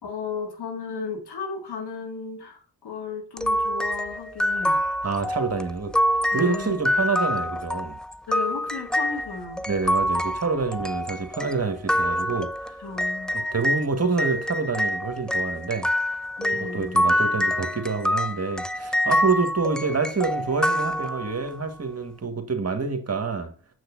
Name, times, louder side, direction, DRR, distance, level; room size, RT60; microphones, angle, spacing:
voice 1, 0.0-4.8 6.3-6.8 8.3-9.7 12.8-13.3 16.4-17.1, left 4 dB, 65° left, 2.1 m, -34 dB
sound 1, 3.4-13.8 14.2-21.5, equal, ahead, 0.5 m, -26 dB
voice 2, 5.0-5.9 6.3-8.0 9.7-12.8 13.3-15.9 16.6-23.5, right 4 dB, 35° right, 1.7 m, -27 dB
7.1 x 6.4 x 2.6 m
hypercardioid pair, 40°, 42 cm